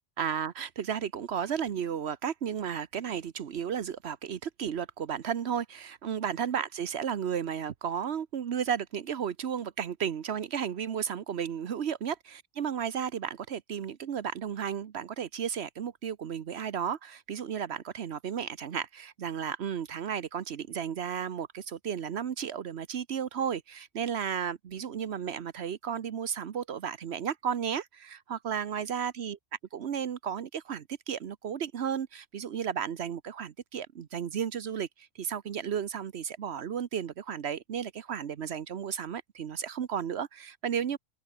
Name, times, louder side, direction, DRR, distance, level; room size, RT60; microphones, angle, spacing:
voice 1, 0.2-29.4 29.7-41.0, right 8 dB, 80° right, 1.2 m, -33 dB
open air
omnidirectional pair, 1.1 m